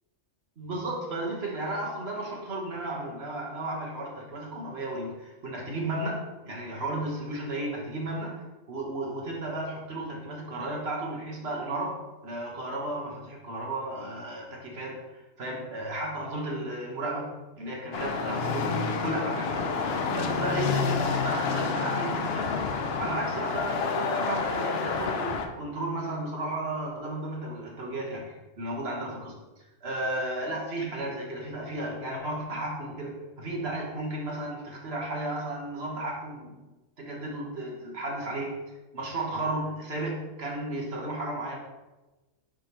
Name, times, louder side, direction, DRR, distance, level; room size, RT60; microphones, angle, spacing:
voice 1, 0.6-11.9 12.2-19.7 20.1-22.6 23.0-29.4 29.8-36.7 37.0-38.6 38.9-41.6, right 1 dB, 50° right, -1 dB, 1.4 m, -34 dB
sound 1, 17.9-25.5, left 5 dB, 60° left, 0.7 m, -29 dB
9.3 x 3.4 x 3.0 m, 1.1 s
omnidirectional pair, 1.4 m